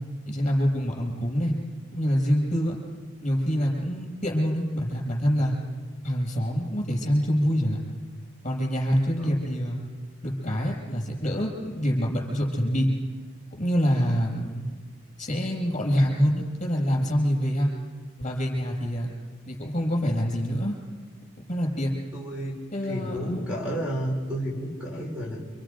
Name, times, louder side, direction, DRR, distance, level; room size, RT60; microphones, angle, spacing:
voice 1, 0.3-1.5 1.9-2.8 3.2-5.6 6.0-7.8 8.4-9.8 10.2-12.9 13.5-14.6 15.2-17.7 18.2-19.1 19.5-20.7 21.4-21.9 22.7-23.5, equal, 35° left, -1 dB, 6.0 m, -26 dB
voice 2, 22.1-22.6 22.8-25.4, equal, 5° right, -3 dB, 3.9 m, -31 dB
29.0 x 27.0 x 5.2 m, 1.4 s
head